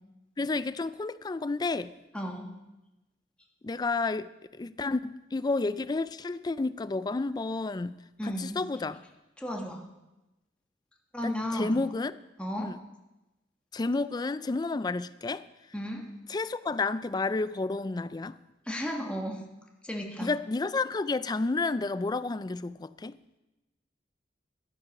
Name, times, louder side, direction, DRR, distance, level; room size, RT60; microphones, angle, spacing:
voice 1, 0.4-1.9 3.6-8.0 8.2-9.0 11.2-12.2 12.6-12.8 13.7-15.4 16.3-18.4 20.2-23.2, left 3 dB, 25° left, 0.4 m, -31 dB
voice 2, 2.1-2.5 8.2-8.6 9.4-9.8 11.1-11.8 12.4-12.7 15.7-16.0 18.6-19.4 19.8-20.3, equal, 5° left, 1.5 m, -34 dB
12.5 x 9.6 x 5.9 m
head